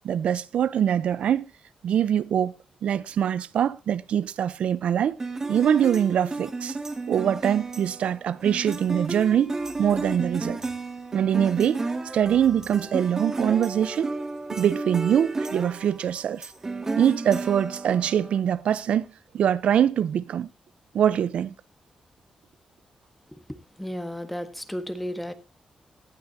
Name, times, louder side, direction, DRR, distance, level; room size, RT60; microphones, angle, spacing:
voice 1, 0.0-1.5 1.8-2.5 2.8-5.2 5.5-6.8 7.1-10.6 11.1-11.8 12.1-14.1 14.5-16.5 16.9-19.1 19.3-20.5 20.9-21.5, right 9 dB, 80° right, 0.7 m, -23 dB
sound 1, 5.2-18.4, right 3 dB, 25° right, 2.1 m, -33 dB
voice 2, 23.8-25.3, equal, 5° left, 1.3 m, -33 dB
18.5 x 12.0 x 2.8 m
wide cardioid pair, 130°, 2 cm